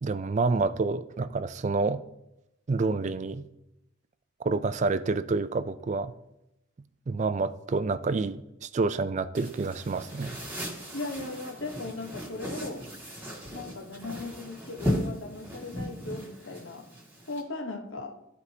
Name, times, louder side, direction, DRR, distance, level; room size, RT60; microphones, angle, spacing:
voice 1, 0.0-2.0 2.7-3.4 4.4-6.1 7.1-10.4, right 3 dB, 35° right, 14 dB, 0.3 m, -28 dB
sound 1, 9.3-17.4, equal, 10° right, 1.8 m, -36 dB
voice 2, 10.9-12.9 13.5-16.9 17.3-18.2, left 2 dB, 65° left, 4 dB, 1.1 m, -38 dB
13.5 x 4.7 x 2.8 m, 0.88 s
head